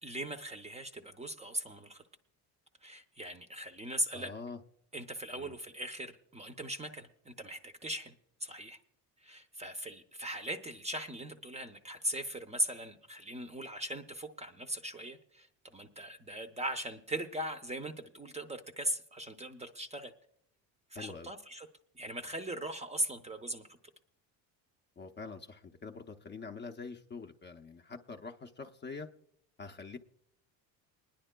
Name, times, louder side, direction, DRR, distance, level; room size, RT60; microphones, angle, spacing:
voice 1, 0.0-2.0 2.8-4.3 4.9-8.1 8.4-8.8 9.2-20.1 20.9-21.7 21.9-23.7, right 1 dB, 15° right, 0.6 m, -39 dB
voice 2, 4.1-4.6 5.3-5.5 20.9-21.3 25.0-29.1 29.6-30.0, left 4 dB, 25° left, 0.6 m, -45 dB
29.5 x 10.0 x 2.2 m
cardioid pair, 105°, 40 cm